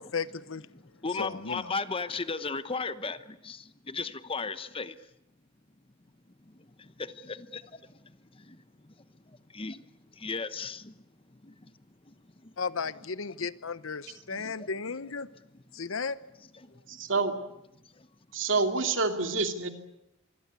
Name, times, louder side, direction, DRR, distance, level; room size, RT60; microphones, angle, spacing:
voice 1, 0.0-0.7 1.2-1.7 12.6-15.3 15.7-16.2, left 5 dB, 85° left, 0.9 m, -34 dB
voice 2, 0.7-5.0 6.5-8.9 9.3-9.9 10.1-11.7 12.0-12.1 12.4-12.5 14.4-15.0 15.5-15.6 16.4-17.0 17.8-18.1, left 4 dB, 25° left, 1.0 m, -37 dB
voice 3, 17.0-17.3 18.3-19.7, right 3 dB, 65° right, 2.6 m, -27 dB
26.0 x 21.0 x 8.3 m
head